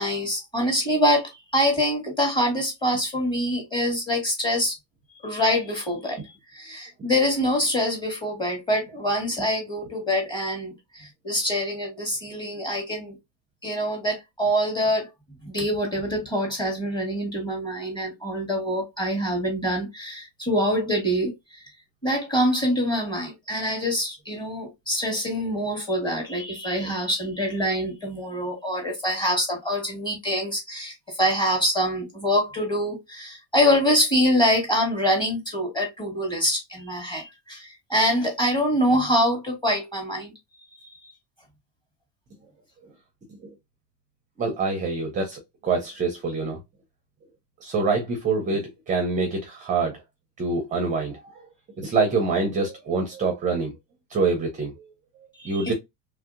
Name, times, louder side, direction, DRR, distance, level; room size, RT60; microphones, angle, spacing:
voice 1, 0.0-4.7 5.2-13.1 13.6-15.1 15.4-21.3 22.0-40.3 40.7-41.0 55.4-55.7, equal, 10° left, 1.4 m, -25 dB
voice 2, 44.4-46.6 47.6-50.0 50.4-51.4 51.8-53.7 54.1-54.9 55.4-55.7, right 4 dB, 20° right, 0.5 m, -25 dB
3.1 x 2.7 x 2.4 m
cardioid pair, 150°, 42 cm